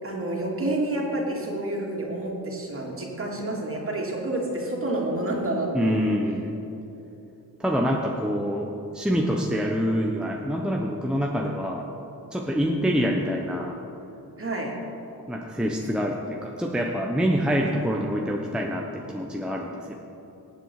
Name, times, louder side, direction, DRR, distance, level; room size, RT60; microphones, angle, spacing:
voice 1, 0.0-6.0 14.4-14.7, right 1 dB, 35° right, -2 dB, 2.8 m, -29 dB
voice 2, 5.7-6.5 7.6-11.9 12.3-13.8 15.3-19.9, equal, ahead, 0 dB, 1.0 m, -26 dB
18.5 x 7.5 x 4.8 m, 2.9 s
cardioid pair, 75°, 39 cm